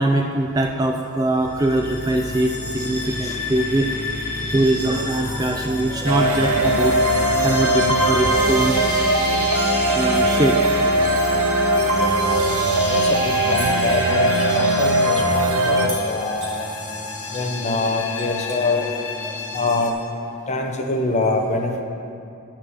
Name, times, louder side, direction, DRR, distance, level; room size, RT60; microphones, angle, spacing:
voice 1, 0.0-3.9 4.5-7.0 7.4-9.0 9.9-10.7 19.2-19.4, right 1 dB, 15° right, 3 dB, 0.3 m, -22 dB
sound 1, 1.3-19.9, left 2 dB, 70° left, 1.2 m, -30 dB
sound 2, 6.1-15.9, right 1 dB, 80° right, 0.9 m, -20 dB
voice 2, 12.9-16.7 17.3-18.9 19.5-19.9 20.5-21.8, left 2 dB, 30° left, 3 dB, 0.7 m, -24 dB
sound 3, 13.6-14.0 15.9-16.6 17.3-17.5 17.9-18.8 20.0-20.1, right 2 dB, 60° right, 1.8 m, -37 dB
9.4 x 6.0 x 6.4 m, 2.6 s
head